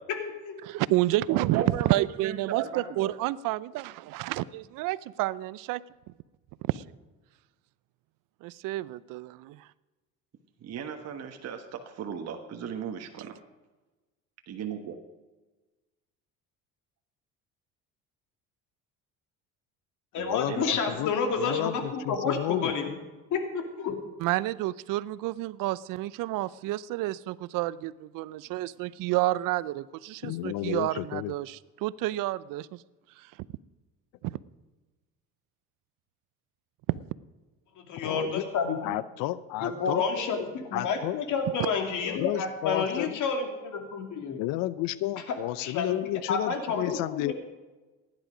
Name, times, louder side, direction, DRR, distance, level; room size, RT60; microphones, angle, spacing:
voice 1, 0.1-0.6 20.1-22.9 23.3-24.0 37.8-39.0 39.6-44.4 45.6-46.0 46.3-47.3, left 5 dB, 60° left, 4 dB, 2.7 m, -30 dB
voice 2, 0.6-5.8 6.7-6.8 8.4-9.7 24.2-32.8 33.2-33.3 34.2-34.4 41.6-41.7, right 17 dB, 70° right, 19 dB, 0.6 m, -30 dB
voice 3, 1.3-1.9 2.2-3.1 10.6-13.3 14.5-15.0 20.5-20.8, right 8 dB, 50° right, 4 dB, 1.3 m, -36 dB
voice 4, 20.2-22.7 30.2-31.3 38.0-38.4 38.8-40.0 40.7-41.2 42.0-43.2 44.4-47.3, left 15 dB, 80° left, 17 dB, 0.6 m, -32 dB
17.0 x 10.5 x 5.0 m, 1.2 s
cardioid pair, 105°, 33 cm